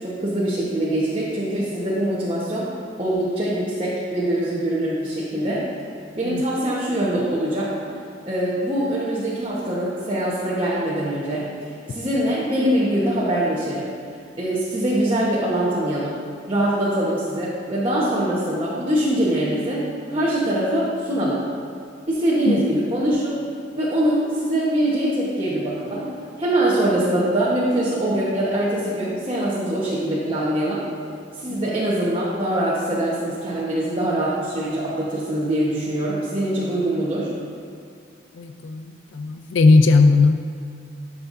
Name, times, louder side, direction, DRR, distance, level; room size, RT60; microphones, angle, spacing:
voice 1, 0.0-2.7 3.0-5.6 6.1-7.7 8.3-11.5 11.9-13.9 14.4-16.1 16.5-21.4 22.1-23.4 23.7-30.8 31.4-37.3, right 1 dB, 30° right, -8 dB, 1.2 m, -23 dB
voice 2, 38.4-40.4, left 3 dB, 75° left, 7 dB, 0.4 m, -17 dB
13.0 x 6.8 x 2.7 m, 2.4 s
head